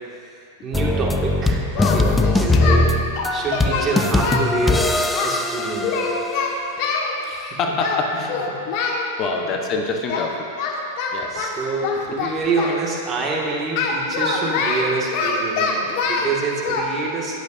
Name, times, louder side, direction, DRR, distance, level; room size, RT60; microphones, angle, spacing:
voice 1, 0.6-2.9 3.3-6.1 7.3-7.6 8.5-8.6 11.3-17.4, right 3 dB, 30° right, -2 dB, 1.9 m, -26 dB
sound 1, 0.7-6.5, left 2 dB, 10° left, 0.6 m, -21 dB
Singing, 1.7-2.8 3.2-5.3 5.8-7.1 7.8-8.0 8.3-9.0 10.1-10.3 10.6-12.8 13.7-16.3 16.6-16.8, left 5 dB, 50° left, 1.5 m, -24 dB
voice 2, 7.2-8.7 9.2-10.5 11.1-11.6, left 4 dB, 35° left, 2 dB, 1.1 m, -26 dB
19.5 x 7.9 x 2.7 m, 2.4 s
hypercardioid pair, 120°, 0 cm